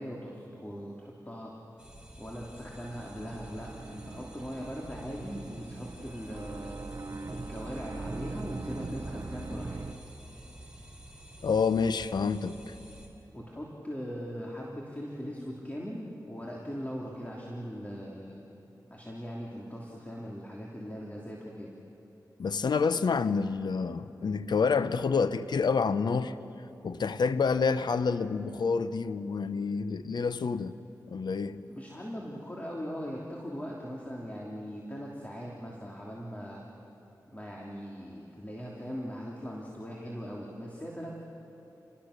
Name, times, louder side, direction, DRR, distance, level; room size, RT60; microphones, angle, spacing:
voice 1, 0.0-1.5 2.2-6.8 7.3-9.8 13.3-18.4 18.9-21.7 31.7-36.6 37.3-41.2, equal, 20° left, 3.1 m, -40 dB
sound 1, 1.8-13.1, right 1 dB, 10° right, 4.1 m, -50 dB
sound 2, 2.7-9.9, right 3 dB, 45° right, 0.9 m, -41 dB
voice 2, 11.4-12.6 22.4-26.3 26.8-30.8 31.1-31.6, left 5 dB, 75° left, 0.8 m, -28 dB
28.5 x 20.0 x 6.7 m
cardioid pair, 50°, 7 cm